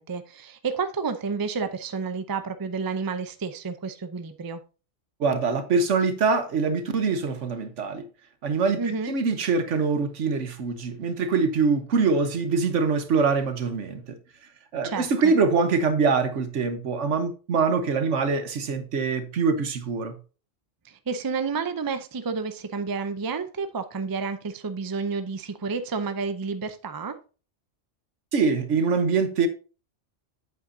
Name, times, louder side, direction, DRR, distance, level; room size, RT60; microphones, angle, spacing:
voice 1, 0.0-4.6 8.8-9.1 14.8-15.3 20.8-27.1, right 5 dB, 25° right, 0.4 m, -30 dB
voice 2, 5.2-8.0 8.4-14.2 14.7-20.2 28.3-29.5, right 4 dB, 75° right, 1.3 m, -24 dB
8.1 x 7.9 x 2.7 m
omnidirectional pair, 1.3 m